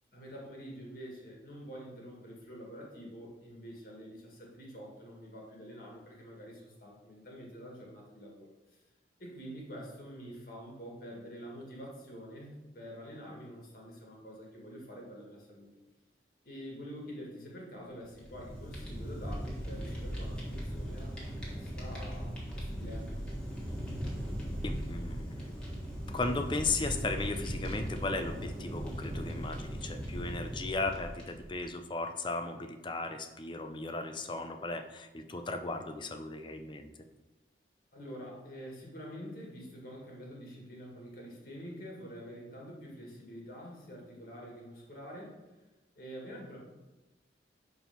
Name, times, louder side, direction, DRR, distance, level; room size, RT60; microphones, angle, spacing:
voice 1, 0.1-8.8 9.2-15.7 16.5-23.2 37.9-45.4 45.9-46.6, equal, 55° left, -2 dB, 1.8 m, -47 dB
Fire, 18.0-31.6, equal, 5° left, 1.6 m, -38 dB
voice 2, 24.6-25.5 26.1-36.9, left 3 dB, 25° left, 7 dB, 0.5 m, -36 dB
5.5 x 4.4 x 5.7 m, 1.1 s
head